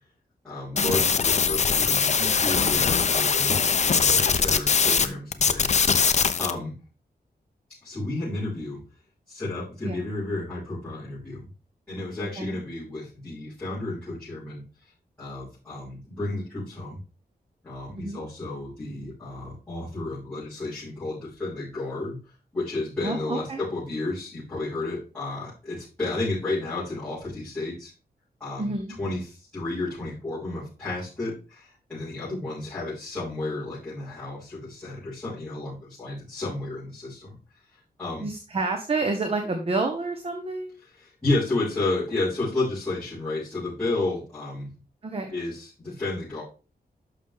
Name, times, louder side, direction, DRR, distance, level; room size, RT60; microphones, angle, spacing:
voice 1, 0.4-5.9 6.4-6.7 7.8-8.8 9.3-11.5 11.9-14.6 15.2-17.0 17.6-22.2 22.5-27.9 28.4-37.4 37.7-38.3 40.8-44.7 45.3-46.4, left 2 dB, 15° left, -13 dB, 5.9 m, -32 dB
sound 1, 0.8-5.1 5.3-6.5, left 6 dB, 45° left, 0.6 m, -22 dB
voice 2, 23.0-23.6 28.6-28.9 38.2-40.7 45.0-45.3, right 3 dB, 35° right, 4 dB, 1.1 m, -29 dB
11.0 x 6.4 x 3.6 m, 0.34 s
wide cardioid pair, 180°, 17 cm